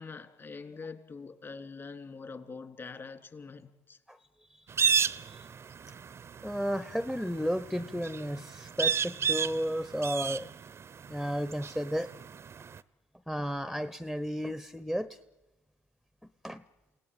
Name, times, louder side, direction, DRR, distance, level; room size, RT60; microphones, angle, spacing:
voice 1, 0.0-4.0, left 4 dB, 35° left, 7 dB, 3.2 m, -44 dB
sound 1, 4.7-12.8, right 6 dB, 40° right, 0.8 m, -32 dB
voice 2, 4.8-5.4 6.4-10.5 11.1-12.1 13.3-15.1 16.4-16.6, equal, ahead, 13 dB, 1.0 m, -33 dB
28.5 x 17.0 x 9.1 m, 1.1 s
hypercardioid pair, 60°, 7 cm